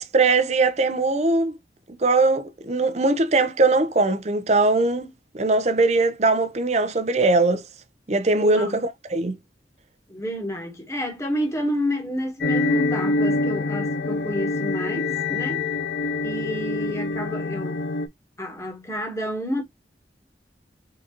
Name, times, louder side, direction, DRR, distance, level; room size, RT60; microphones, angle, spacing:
voice 1, 0.0-1.5 2.0-7.6 8.1-9.4, right 3 dB, 35° right, 0.6 m, -21 dB
voice 2, 8.4-8.8 10.1-15.6 16.2-17.8 18.4-19.6, equal, 15° left, 1.1 m, -29 dB
sound 1, 12.4-18.1, left 2 dB, 60° left, 0.5 m, -25 dB
3.9 x 3.8 x 2.9 m
head